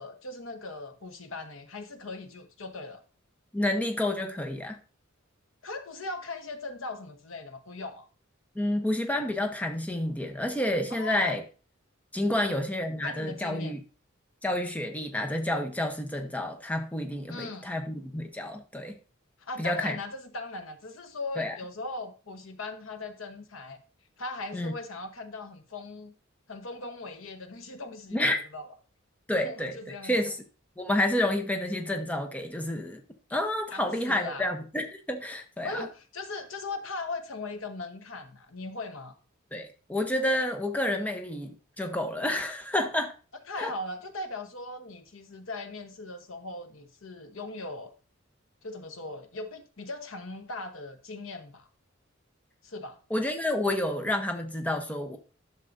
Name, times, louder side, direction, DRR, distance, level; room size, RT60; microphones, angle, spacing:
voice 1, 0.0-3.0 5.6-8.1 10.9-11.4 12.3-12.6 13.0-13.8 17.3-17.7 19.4-23.8 24.2-26.1 26.5-28.7 29.4-30.1 33.7-34.5 35.6-39.2 43.5-47.9 48.6-51.7 52.6-53.0, left 2 dB, 70° left, 1.0 m, -39 dB
voice 2, 3.5-4.8 8.6-11.4 12.1-13.8 14.4-19.0 19.6-20.0 21.4-21.5 24.5-24.7 28.1-28.4 29.3-30.4 30.8-33.0 33.3-35.9 39.5-43.1 43.6-43.7 53.1-55.2, left 1 dB, 5° left, 0.8 m, -29 dB
11.0 x 6.5 x 2.6 m
head